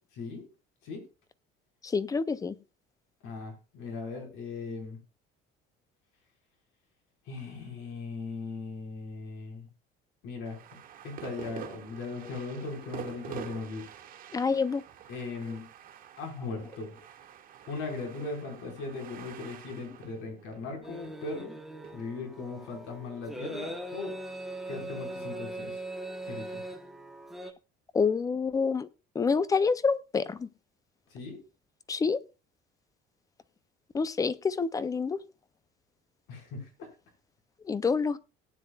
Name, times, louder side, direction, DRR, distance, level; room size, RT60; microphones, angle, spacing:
voice 1, 1.8-2.6 14.3-14.8 27.9-28.9 29.2-30.5 31.9-32.2 33.9-35.2 37.7-38.2, left 5 dB, 15° left, 17 dB, 0.4 m, -27 dB
voice 2, 3.2-5.0 7.3-9.7 10.2-10.8 11.0-13.9 15.1-15.6 16.2-16.9 17.7-21.6 21.9-24.2 24.7-25.8 26.2-26.6 31.1-31.4 36.3-36.9, left 3 dB, 70° left, 2 dB, 4.6 m, -38 dB
sound 1, 10.4-21.9, right 9 dB, 40° right, 1.6 m, -47 dB
sound 2, 20.8-27.5, right 1 dB, ahead, 1.0 m, -40 dB
18.0 x 9.5 x 2.3 m, 0.29 s
cardioid pair, 160°, 21 cm